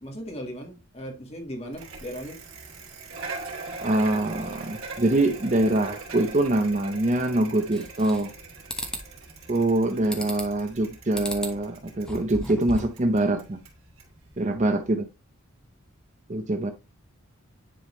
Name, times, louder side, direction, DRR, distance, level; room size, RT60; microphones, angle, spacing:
voice 1, 0.0-2.4, equal, 30° left, 1.6 m, -37 dB
Bicycle, 1.7-14.9, right 3 dB, 75° right, 2.7 m, -42 dB
voice 2, 3.8-8.3 9.5-13.6 14.4-15.1 16.3-16.7, right 1 dB, 35° right, 0.7 m, -24 dB
sound 1, 7.7-8.4 8.7-9.1 10.1-10.6 11.1-11.6 12.0-13.0, equal, 5° left, 1.0 m, -35 dB
10.0 x 3.7 x 3.1 m
head